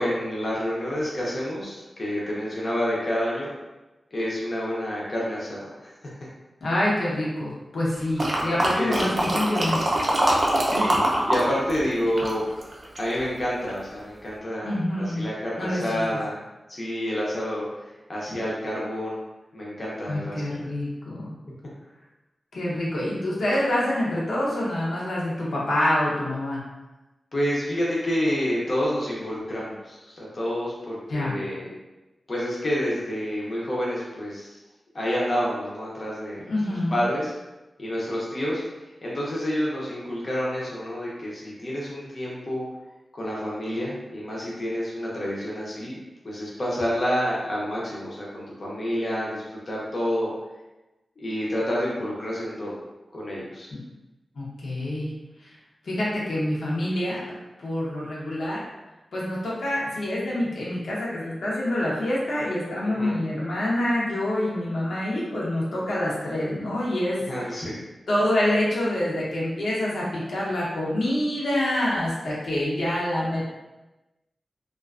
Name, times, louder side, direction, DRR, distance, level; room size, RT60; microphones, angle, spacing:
voice 1, 0.0-3.5 4.1-5.7 8.7-9.0 10.6-11.0 11.2-12.4 13.0-16.4 16.7-17.7 18.1-19.2 19.5-20.7 27.3-31.7 32.3-34.6 34.9-37.3 37.8-38.6 39.0-42.6 43.1-46.0 46.2-50.3 51.2-52.7 53.1-53.7 62.8-63.1 67.3-67.8, equal, 40° left, -6 dB, 0.6 m, -28 dB
voice 2, 6.6-10.2 14.6-15.2 15.6-16.0 20.1-21.3 22.5-26.6 31.1-31.4 36.5-37.0 53.7-53.8 54.4-55.1 55.8-57.2 57.6-58.6 59.1-67.2 68.1-73.4, left 1 dB, 85° left, -6 dB, 0.7 m, -26 dB
sound 1, 8.2-11.4 11.7-13.2 13.7-13.8, right 1 dB, 45° right, 0.4 m, -23 dB
2.4 x 2.3 x 2.3 m, 1.1 s
wide cardioid pair, 130°, 0 cm